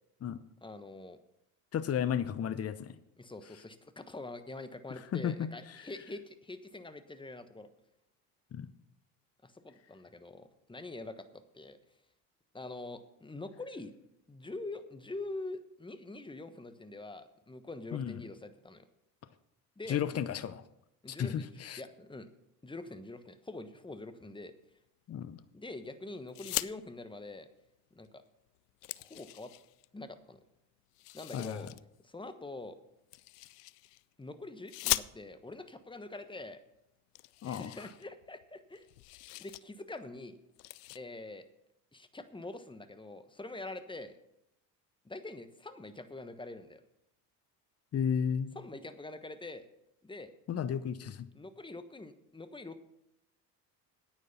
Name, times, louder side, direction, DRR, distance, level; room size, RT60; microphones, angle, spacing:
voice 1, 0.6-1.2 3.2-7.7 9.4-11.8 12.5-13.9 14.3-18.9 19.8-20.0 21.0-22.3 22.6-24.5 25.5-27.5 27.9-28.2 29.0-29.5 29.9-30.4 31.1-31.7 32.0-32.8 34.2-36.6 37.5-38.9 39.4-40.4 40.9-41.4 41.9-44.2 45.0-46.8 48.5-49.7 50.0-50.3 51.3-52.8, left 2 dB, 10° left, 10 dB, 1.2 m, -45 dB
voice 2, 1.7-3.0 5.1-5.5 8.5-8.7 17.9-18.2 19.9-20.6 21.1-21.8 25.1-25.4 31.3-31.6 37.4-37.7 47.9-48.6 50.5-51.3, left 8 dB, 30° left, 14 dB, 0.8 m, -33 dB
sound 1, 26.3-26.7 28.0-28.1 28.5-29.9 30.9-31.8 33.1-34.0 34.7-35.5 36.4-36.5 36.7-36.8 37.1-38.5 38.7-39.6 40.0-40.2 40.5-41.0, left 20 dB, 75° left, 0.5 m, -39 dB
9.5 x 9.4 x 5.9 m, 0.82 s
hypercardioid pair, 70°, 47 cm